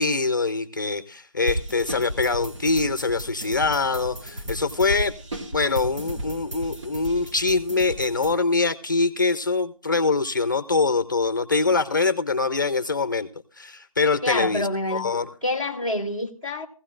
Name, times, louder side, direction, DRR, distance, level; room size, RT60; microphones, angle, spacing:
voice 1, 0.0-5.1 5.5-13.3 13.6-15.3, left 3 dB, 35° left, 0.6 m, -24 dB
sound 1, 1.5-8.3, right 1 dB, 60° right, 2.1 m, -34 dB
voice 2, 14.2-15.0 15.4-16.7, left 1 dB, 10° right, 0.9 m, -27 dB
16.0 x 15.0 x 2.5 m
figure-of-eight pair, 175°, 18 cm